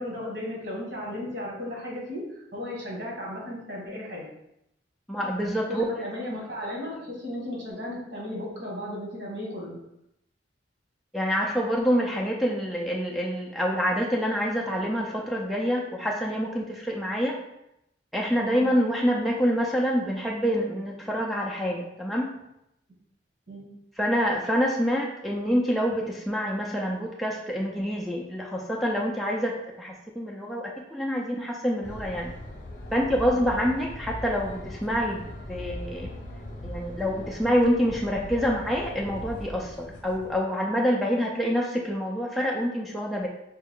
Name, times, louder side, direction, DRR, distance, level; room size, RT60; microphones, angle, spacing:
voice 1, 0.0-4.3 5.7-9.8 18.4-18.6 23.5-23.7 33.3-33.5, left 1 dB, 65° right, -4 dB, 1.5 m, -35 dB
voice 2, 5.1-5.8 11.1-17.4 18.1-22.3 24.0-32.3 32.9-36.1 36.6-43.3, equal, ahead, -3 dB, 0.3 m, -26 dB
sound 1, 31.8-40.4, left 1 dB, 45° left, 0.7 m, -39 dB
4.4 x 2.4 x 3.5 m, 0.82 s
head